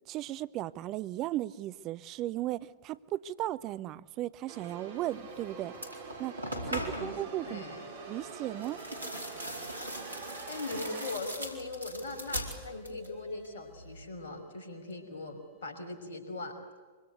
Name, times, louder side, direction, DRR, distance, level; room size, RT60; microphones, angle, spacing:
voice 1, 0.1-5.7 6.2-6.3 6.6-7.7 8.1-8.8, right 14 dB, 35° right, 17 dB, 0.8 m, -36 dB
sound 1, 4.5-11.2, right 4 dB, 55° right, 4.5 m, -45 dB
sound 2, 4.9-9.3 10.7-16.1, equal, 20° left, 4.6 m, -57 dB
sound 3, 5.3-5.4 5.7-7.2 8.6-13.2 13.4-14.0, equal, 85° right, 4.5 m, -40 dB
voice 2, 6.7-7.1 7.4-7.9 10.2-16.6, left 2 dB, 65° left, 5 dB, 6.0 m, -40 dB
25.0 x 25.0 x 8.2 m, 1.4 s
figure-of-eight pair, 100°, 0 cm